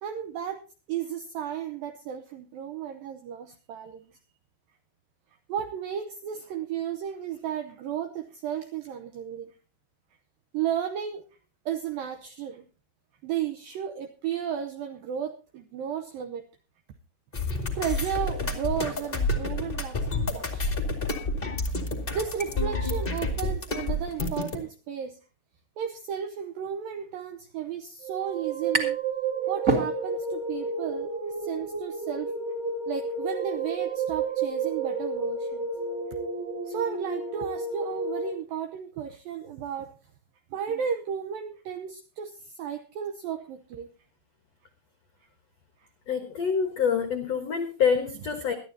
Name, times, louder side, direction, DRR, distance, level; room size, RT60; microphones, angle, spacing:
voice 1, 0.0-4.1 5.5-9.5 10.5-11.2 11.7-12.7 13.2-16.4 17.8-20.6 22.1-25.2 25.8-29.0 29.5-32.3 32.9-35.7 36.7-39.9 40.5-43.9, right 9 dB, 90° right, 7 dB, 2.0 m, -34 dB
sound 1, 17.3-24.6, left 2 dB, 55° left, 0.5 m, -29 dB
sound 2, 27.6-27.7 27.9-29.1 29.5-30.4, right 3 dB, 30° right, 1.5 m, -28 dB
sound 3, 28.0-38.3, right 4 dB, 65° right, 5.3 m, -31 dB
voice 2, 46.1-48.6, left 6 dB, 80° left, 6 dB, 1.4 m, -26 dB
21.0 x 12.5 x 2.7 m, 0.34 s
omnidirectional pair, 5.2 m